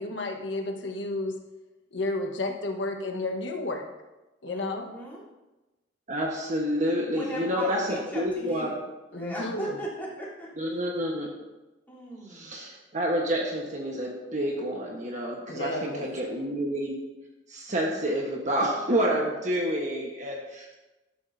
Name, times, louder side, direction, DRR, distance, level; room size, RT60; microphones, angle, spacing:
voice 1, 0.0-1.4 1.9-3.8 4.4-4.9 9.1-9.8 15.5-16.1, left 2 dB, 80° left, 3 dB, 1.4 m, -32 dB
voice 2, 4.5-5.2 7.1-8.8 9.1-10.5 11.9-12.5, right 1 dB, 10° left, -8 dB, 3.6 m, -37 dB
voice 3, 6.1-8.7 10.6-11.3 12.3-17.0 17.5-20.8, equal, 40° right, -1 dB, 1.3 m, -29 dB
12.0 x 12.0 x 2.8 m, 1.1 s
head